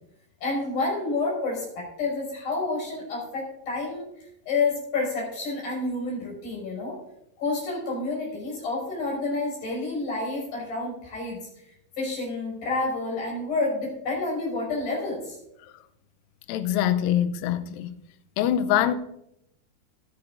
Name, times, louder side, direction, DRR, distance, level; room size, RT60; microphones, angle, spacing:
voice 1, 0.4-7.0 7.4-11.4 12.0-15.4, left 3 dB, 65° left, 7.3 m, -29 dB
voice 2, 16.5-17.9 18.4-19.0, left 11 dB, 85° left, 2.1 m, -24 dB
15.0 x 13.0 x 2.6 m
omnidirectional pair, 4.6 m